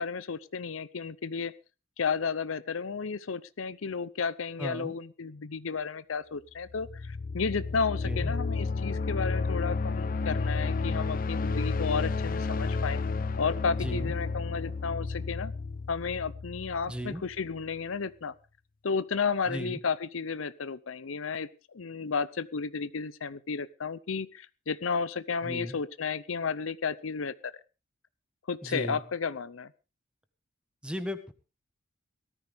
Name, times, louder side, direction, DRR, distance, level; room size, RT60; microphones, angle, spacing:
voice 1, 0.0-1.5 2.0-13.0 13.4-15.5 15.9-18.3 18.8-27.5 28.5-29.7, left 5 dB, 85° left, 17 dB, 0.7 m, -33 dB
voice 2, 4.6-4.9 8.0-8.3 13.8-14.1 16.9-17.2 19.5-19.8 25.4-25.8 28.6-29.0 30.8-31.3, equal, 5° right, 9 dB, 1.3 m, -36 dB
sound 1, 6.7-17.4, left 4 dB, 45° left, 0.6 m, -31 dB
18.5 x 13.5 x 3.5 m, 0.31 s
head